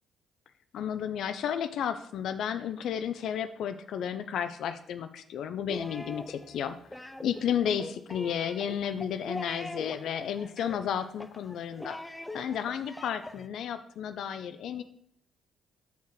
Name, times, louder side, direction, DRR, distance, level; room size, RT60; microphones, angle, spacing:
voice 1, 0.7-6.8 7.2-12.0 12.3-14.8, left 8 dB, 70° left, 10 dB, 0.4 m, -32 dB
sound 1, 5.7-13.5, left 1 dB, 15° left, 0.6 m, -42 dB
6.7 x 4.6 x 4.8 m, 0.68 s
supercardioid pair, 60°, 0 cm